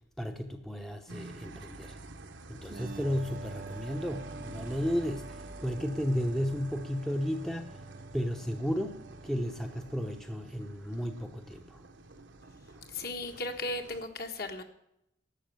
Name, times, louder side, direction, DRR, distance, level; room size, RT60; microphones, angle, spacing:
voice 1, 0.2-2.0 2.5-7.8 8.1-11.8, equal, ahead, 5 dB, 0.8 m, -33 dB
sound 1, 1.1-14.1, right 2 dB, 70° right, 1.1 m, -49 dB
sound 2, 2.7-10.1, right 3 dB, 45° right, 0.6 m, -47 dB
voice 2, 12.9-14.6, left 2 dB, 50° left, 4 dB, 1.5 m, -36 dB
11.5 x 8.2 x 9.3 m, 0.79 s
head